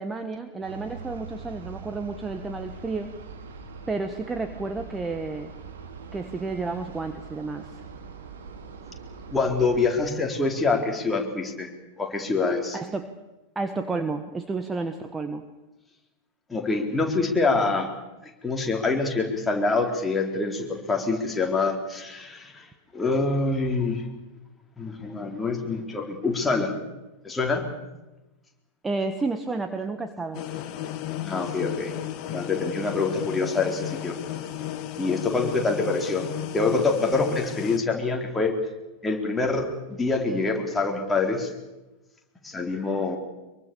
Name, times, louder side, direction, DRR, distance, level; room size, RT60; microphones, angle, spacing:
voice 1, 0.0-3.1 3.9-5.5 6.1-7.8 12.7-13.1 13.5-15.4 28.8-30.4, right 3 dB, 15° right, 8 dB, 1.4 m, -31 dB
sound 1, 0.6-10.0, right 4 dB, 60° right, 3.1 m, -42 dB
voice 2, 9.3-11.7 12.0-12.8 16.5-17.9 18.4-22.6 22.9-24.1 24.8-26.7 27.2-27.6 31.2-31.9 32.3-34.2 35.0-36.3 36.5-38.5 39.0-39.7 40.0-41.5 42.4-43.2, left 3 dB, 10° left, 1 dB, 4.1 m, -25 dB
sound 2, 30.3-37.8, left 11 dB, 40° left, 1.6 m, -34 dB
24.5 x 23.0 x 7.0 m, 1.0 s
figure-of-eight pair, 90°, 0 cm